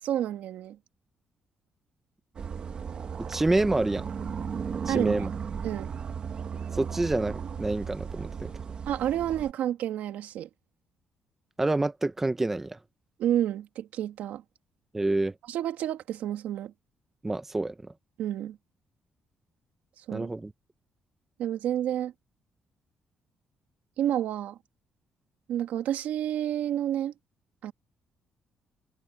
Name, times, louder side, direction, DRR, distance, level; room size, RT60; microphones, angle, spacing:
voice 1, 0.0-0.8 4.9-5.2 5.6-5.9 8.9-10.5 13.2-14.4 15.5-16.7 18.2-18.6 20.1-20.3 21.4-22.1 24.0-24.6 25.5-27.1 27.6-27.7, right 11 dB, 80° right, 2.3 m, -29 dB
sound 1, 2.3-9.5, right 6 dB, 35° right, 1.3 m, -35 dB
voice 2, 3.3-4.1 4.8-5.3 6.7-8.5 11.6-12.8 14.9-15.3 17.2-17.9 20.1-20.5, right 2 dB, 10° right, 0.8 m, -27 dB
cardioid pair, 165°, 3 cm